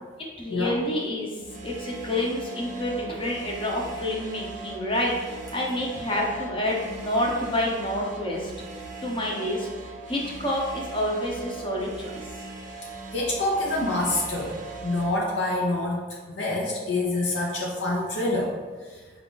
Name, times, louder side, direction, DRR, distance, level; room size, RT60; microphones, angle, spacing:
voice 1, 0.2-8.5 9.0-9.7 10.1-12.2, left 1 dB, 30° left, -2 dB, 0.8 m, -28 dB
sound 1, 1.4-15.1, right 3 dB, 45° right, 0.5 m, -40 dB
voice 2, 13.1-14.6 14.8-16.0 16.3-18.5 18.9-19.0, left 2 dB, 85° left, -3 dB, 0.7 m, -26 dB
4.9 x 2.3 x 3.8 m, 1.4 s
head